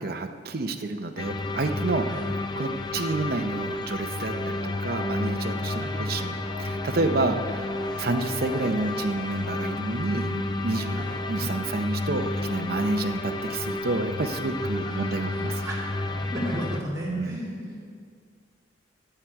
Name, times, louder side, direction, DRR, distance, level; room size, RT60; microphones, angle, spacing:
voice 1, 0.0-15.6 17.0-17.4, right 2 dB, 55° right, 6 dB, 0.7 m, -29 dB
sound 1, 1.2-16.8, left 2 dB, 25° left, 0.6 m, -31 dB
sound 2, 4.3-9.7 10.7-11.3 12.4-13.5 15.4-16.5, left 2 dB, 70° left, 2.0 m, -42 dB
voice 2, 14.8-18.0, equal, 20° right, -6 dB, 2.6 m, -35 dB
14.5 x 9.1 x 4.6 m, 2.1 s
head